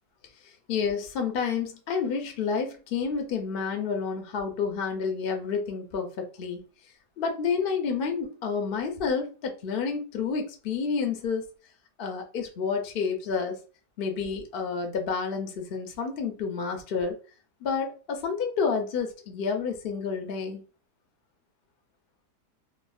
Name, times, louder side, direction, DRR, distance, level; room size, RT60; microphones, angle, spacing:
voice 1, 0.4-6.7 7.2-11.5 12.0-13.6 14.0-17.2 17.6-20.6, left 5 dB, 85° left, 4 dB, 0.5 m, -29 dB
3.5 x 2.1 x 2.3 m, 0.35 s
omnidirectional pair, 1.8 m